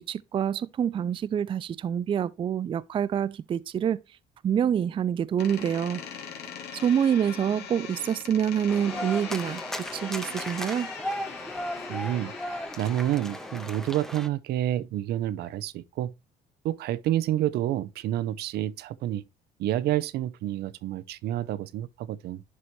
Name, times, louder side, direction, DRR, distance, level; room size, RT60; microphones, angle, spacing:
voice 1, 0.0-4.0 4.4-6.0 6.7-10.9, right 8 dB, 30° right, 0.4 m, -27 dB
Door, 5.4-13.9, left 7 dB, 80° left, 2.3 m, -41 dB
sound 1, 8.7-14.3, equal, 5° left, 0.9 m, -36 dB
voice 2, 11.9-16.1 16.6-19.2 19.6-22.4, right 13 dB, 75° right, 0.7 m, -29 dB
11.0 x 4.2 x 3.1 m
cardioid pair, 110°, 17 cm